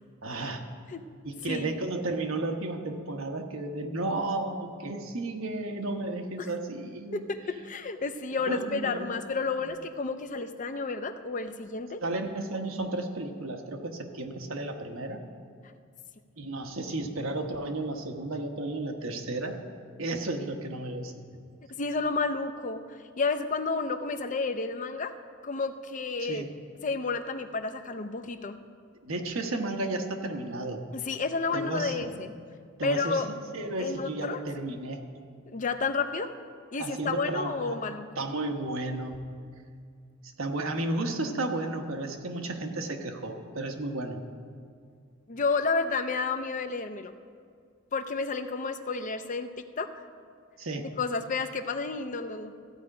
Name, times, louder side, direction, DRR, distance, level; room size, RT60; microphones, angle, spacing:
voice 1, 0.2-0.6 1.2-7.2 8.5-9.1 12.0-15.2 16.4-19.6 20.0-21.5 26.2-26.5 29.0-30.8 31.5-32.1 32.8-35.0 36.8-37.8 38.2-39.2 40.2-44.2 50.6-50.9, right 2 dB, 80° right, 4 dB, 1.1 m, -33 dB
voice 2, 1.5-1.9 7.1-7.4 7.7-12.0 21.8-22.8 23.2-25.1 25.4-26.5 26.8-28.6 30.9-32.3 32.8-33.3 33.8-34.4 35.5-36.3 36.7-38.1 45.3-47.1 47.9-49.9 50.8-52.5, left 4 dB, 40° left, 9 dB, 0.6 m, -31 dB
14.5 x 5.0 x 8.6 m, 2.1 s
head